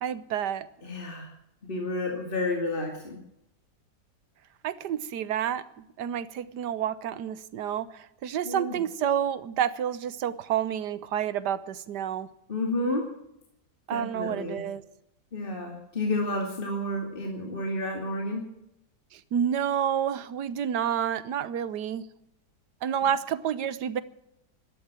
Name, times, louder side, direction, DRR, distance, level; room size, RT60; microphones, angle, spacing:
voice 1, 0.0-0.7 4.6-5.6 6.0-12.3 13.9-14.8 19.1-22.1 22.8-24.0, right 9 dB, 85° right, 15 dB, 1.5 m, -29 dB
voice 2, 0.8-1.3 1.7-3.2 8.4-8.8 12.5-13.1 13.9-14.6 15.3-18.5, left 1 dB, 30° left, 1 dB, 2.8 m, -30 dB
13.0 x 12.0 x 8.9 m, 0.80 s
omnidirectional pair, 1.7 m